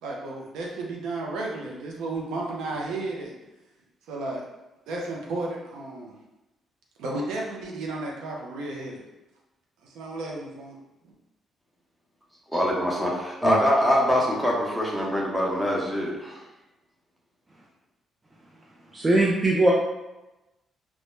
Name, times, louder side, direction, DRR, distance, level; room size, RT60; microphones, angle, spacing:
voice 1, 0.0-3.3 4.1-4.4 4.9-6.2 7.0-9.0 9.8-10.8 11.0-11.1, right 2 dB, 90° right, -2 dB, 0.5 m, -33 dB
voice 2, 12.5-16.4, equal, 5° right, -4 dB, 0.7 m, -24 dB
voice 3, 18.9-19.7, right 2 dB, 25° right, -3 dB, 0.3 m, -20 dB
2.1 x 2.0 x 3.0 m, 1.0 s
cardioid pair, 90°, 0 cm